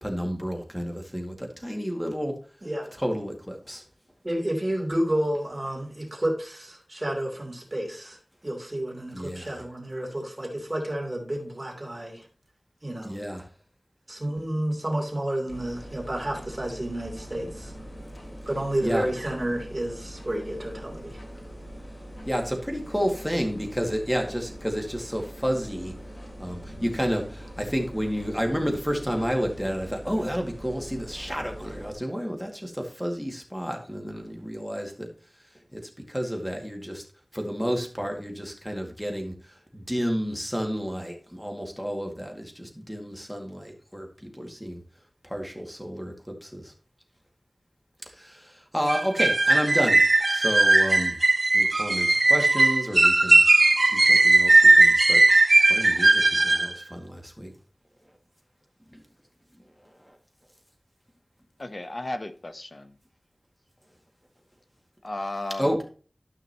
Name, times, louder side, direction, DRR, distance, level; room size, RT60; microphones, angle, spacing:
voice 1, 0.0-2.3 2.9-3.8 9.1-9.6 13.0-13.4 18.8-19.1 22.3-25.9 26.4-35.1 35.7-35.8 36.1-37.0 37.3-39.3 39.7-44.1 44.3-44.8 45.2-46.7 48.1-50.0 50.3-51.2 51.5-53.4 53.9-55.2 55.7-57.5 58.9-59.0 65.6-65.8, equal, 5° left, 2 dB, 2.1 m, -30 dB
voice 2, 2.6-2.9 4.2-8.2 8.4-12.2 12.8-13.1 14.1-17.7 18.5-21.2, right 1 dB, 35° right, -1 dB, 3.1 m, -30 dB
sound 1, 15.5-31.9, equal, 75° left, 2.8 m, -42 dB
sound 2, 48.9-56.7, right 2 dB, 55° right, 0.4 m, -18 dB
voice 3, 61.6-62.9 65.0-65.8, left 2 dB, 45° left, 9 dB, 0.8 m, -34 dB
12.5 x 5.8 x 2.9 m, 0.39 s
wide cardioid pair, 65°, 0 cm